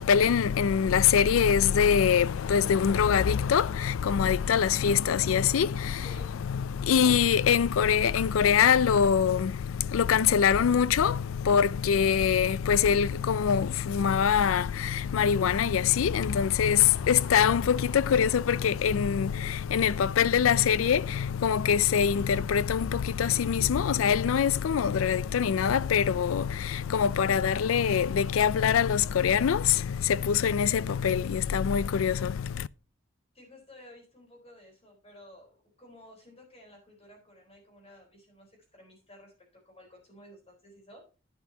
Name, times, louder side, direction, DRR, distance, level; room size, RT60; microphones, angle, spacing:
voice 1, 0.0-32.7, left 7 dB, 80° left, 0.4 m, -24 dB
voice 2, 5.9-6.6 16.7-17.1 33.3-41.0, left 1 dB, 30° left, 4.1 m, -53 dB
11.0 x 9.4 x 2.8 m
head